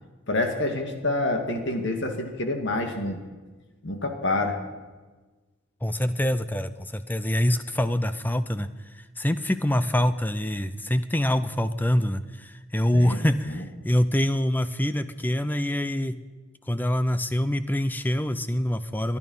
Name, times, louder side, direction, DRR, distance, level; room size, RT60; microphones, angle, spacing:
voice 1, 0.3-3.2 3.8-4.6 12.9-13.2, left 2 dB, 55° left, 4 dB, 2.1 m, -27 dB
voice 2, 5.8-8.7 9.2-16.1 16.7-19.2, left 1 dB, 10° left, 12 dB, 0.5 m, -25 dB
22.0 x 11.0 x 5.5 m, 1.3 s
head